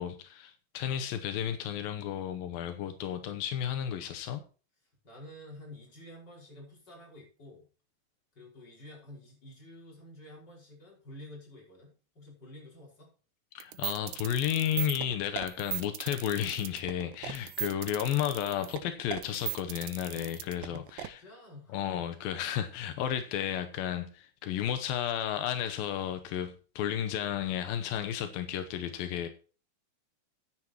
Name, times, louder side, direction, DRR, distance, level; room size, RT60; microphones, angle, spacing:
voice 1, 0.0-4.4 13.5-21.2 21.7-29.3, left 10 dB, 85° left, 2.7 m, -33 dB
voice 2, 5.0-7.7 8.3-13.1 20.6-21.8, left 1 dB, 30° left, 5.9 m, -50 dB
sound 1, 13.6-21.1, right 14 dB, 75° right, 2.0 m, -37 dB
15.0 x 9.9 x 3.0 m
omnidirectional pair, 4.1 m